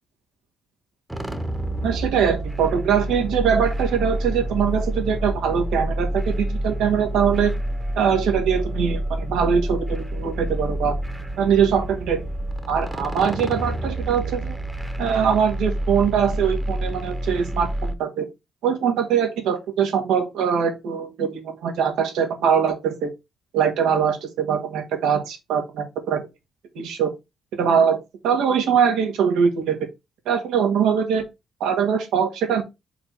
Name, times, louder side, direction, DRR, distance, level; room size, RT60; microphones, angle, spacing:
sound 1, 1.1-17.9, right 1 dB, 5° right, 1.0 m, -28 dB
voice 1, 1.8-7.5 8.0-11.0 11.4-12.2 12.7-14.6 15.0-18.3 18.6-23.1 23.5-26.2 26.8-27.1 27.6-28.0 28.2-29.8 30.3-31.3 31.6-32.6, right 7 dB, 90° right, 1.9 m, -22 dB
5.2 x 4.2 x 4.7 m
cardioid pair, 90°, 0 cm